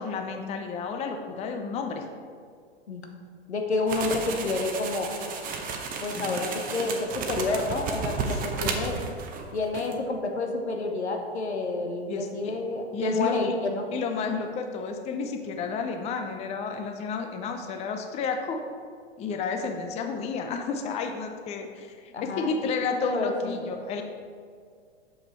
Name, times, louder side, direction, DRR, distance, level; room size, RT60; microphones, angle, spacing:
voice 1, 0.0-2.0 6.1-6.4 12.1-12.6 12.9-13.5 13.9-18.6 19.2-24.0, left 5 dB, 20° left, 5 dB, 0.5 m, -31 dB
voice 2, 3.5-5.1 6.0-9.0 9.5-13.8 22.1-22.5 22.9-23.5, left 3 dB, 85° left, 3 dB, 1.0 m, -29 dB
sound 1, 3.9-9.5 9.7-9.9, right 5 dB, 25° right, 0.8 m, -33 dB
6.8 x 5.5 x 4.4 m, 2.2 s
figure-of-eight pair, 100°, 33 cm